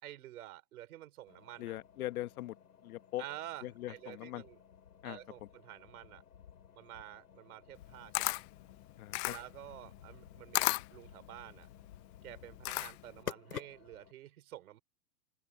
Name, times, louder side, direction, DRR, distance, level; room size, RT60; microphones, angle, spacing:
voice 1, 0.0-1.8 3.2-4.6 5.0-6.2 6.7-8.4 9.3-11.7 12.2-14.8, right 13 dB, 70° right, 5.3 m, -49 dB
sound 1, 1.3-14.1, left 8 dB, 90° left, 5.7 m, -53 dB
voice 2, 1.6-2.6 2.8-3.2 3.6-4.4 5.0-5.2 9.0-9.3, left 15 dB, 65° left, 1.3 m, -40 dB
Camera, 7.7-13.2, left 24 dB, 45° left, 0.9 m, -36 dB
open air
hypercardioid pair, 130°, 46 cm